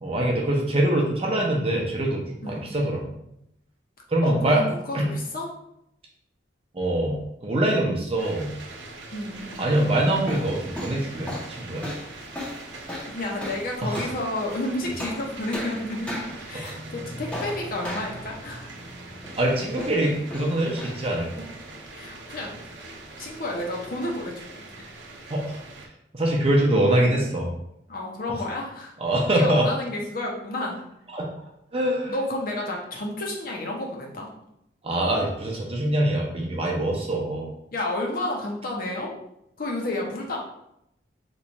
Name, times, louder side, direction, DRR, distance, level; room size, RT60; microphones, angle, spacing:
voice 1, 0.0-3.1 4.1-4.6 4.9-5.1 6.7-8.5 9.6-11.9 13.8-14.1 16.6-16.8 19.4-21.3 25.3-25.6 26.1-27.5 29.0-29.7 31.1-31.3 31.7-32.1 34.8-37.5, right 1 dB, 30° right, -1 dB, 0.6 m, -24 dB
voice 2, 4.2-5.5 9.1-9.7 13.1-18.7 21.9-22.8 23.2-25.0 27.9-28.9 29.3-30.8 32.1-34.3 37.7-39.1 39.6-40.4, left 1 dB, 50° left, -1 dB, 0.7 m, -31 dB
sound 1, 8.2-25.9, right 2 dB, 75° right, 0.6 m, -42 dB
sound 2, 9.3-23.5, left 1 dB, 5° left, 0.6 m, -39 dB
3.0 x 2.3 x 4.0 m, 0.79 s
head